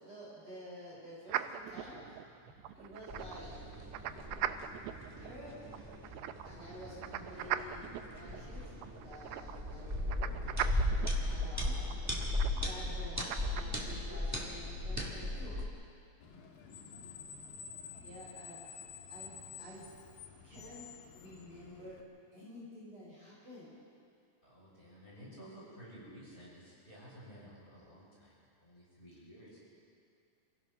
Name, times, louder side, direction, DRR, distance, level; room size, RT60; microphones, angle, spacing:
voice 1, 0.0-2.1 2.4-3.6 5.2-5.6 6.4-10.3 10.6-11.8 12.5-15.6 18.0-18.6 19.1-20.0 20.4-20.9 21.1-22.0 22.3-23.7, left 1 dB, 35° right, -6 dB, 5.5 m, -50 dB
sound 1, 1.3-13.6, right 12 dB, 85° right, 2.5 m, -42 dB
sound 2, 3.1-15.7, left 1 dB, 15° right, 0.5 m, -37 dB
Screech, 16.2-22.0, left 7 dB, 70° left, 3.2 m, -50 dB
voice 2, 24.4-28.3 28.6-29.6, equal, 15° left, -7 dB, 6.8 m, -53 dB
26.5 x 16.0 x 6.0 m, 2.4 s
omnidirectional pair, 4.3 m